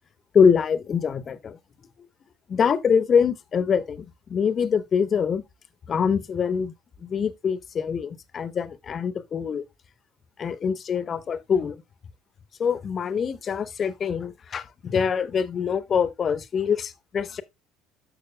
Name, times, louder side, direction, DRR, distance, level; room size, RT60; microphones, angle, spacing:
voice 1, 0.3-1.6 2.5-5.4 5.9-6.7 7.0-9.6 10.4-11.8 12.6-17.4, left 6 dB, 40° left, 0.9 m, -24 dB
12.0 x 6.4 x 2.2 m
figure-of-eight pair, 60°, 0 cm